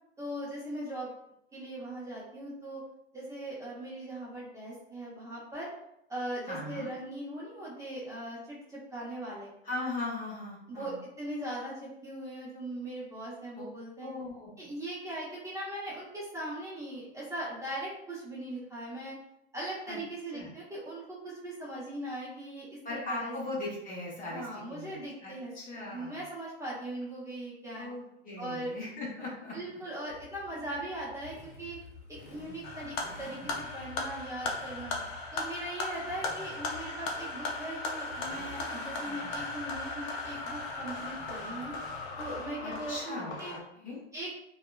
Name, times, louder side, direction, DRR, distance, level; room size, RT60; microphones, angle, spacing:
voice 1, 0.2-1.1 1.5-2.8 3.1-5.7 6.1-9.5 10.7-14.1 14.6-19.2 19.5-23.3 24.3-27.9 28.4-28.7 29.5-31.8 32.1-35.0 35.3-41.7 42.2-43.5 44.1-44.4, right 1 dB, 10° right, -8 dB, 0.9 m, -40 dB
voice 2, 6.5-6.9 9.6-10.9 13.6-13.7 14.0-14.7 19.9-20.0 20.3-20.5 22.8-25.0 25.2-26.2 27.7-29.6 42.6-44.0, left 2 dB, 25° left, -5 dB, 1.0 m, -39 dB
Motorcycle, 30.1-42.9, left 2 dB, 90° left, 0.7 m, -51 dB
sound 1, 32.6-43.6, left 3 dB, 45° left, 0.6 m, -37 dB
2.7 x 2.3 x 2.3 m, 0.79 s
figure-of-eight pair, 90°, 33 cm